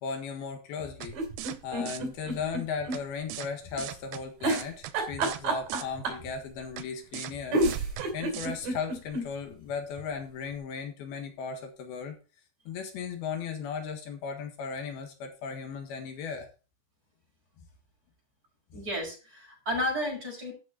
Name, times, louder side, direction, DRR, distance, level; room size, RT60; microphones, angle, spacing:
voice 1, 0.0-1.2 1.6-12.2 12.7-16.5 17.6-17.7 18.7-18.8, left 6 dB, 85° left, 5 dB, 3.4 m, -36 dB
sound 1, 1.0-1.1 1.4-1.6 1.9-2.0 2.9-3.0 3.3-3.5 3.8-4.2 4.5-4.9 5.2-5.4 5.7-5.8 6.8-6.9 7.1-7.3 7.6-8.0 8.3-8.5, right 14 dB, 90° right, 2.6 m, -38 dB
sound 2, 1.1-3.0 3.3-3.4 4.4-6.3 7.2-7.3 7.5-9.3 9.7-9.8 10.0-10.1, right 2 dB, 65° right, 4.4 m, -29 dB
voice 2, 18.7-20.5, left 1 dB, 25° right, -2 dB, 5.6 m, -32 dB
13.0 x 6.3 x 4.0 m, 0.34 s
omnidirectional pair, 4.4 m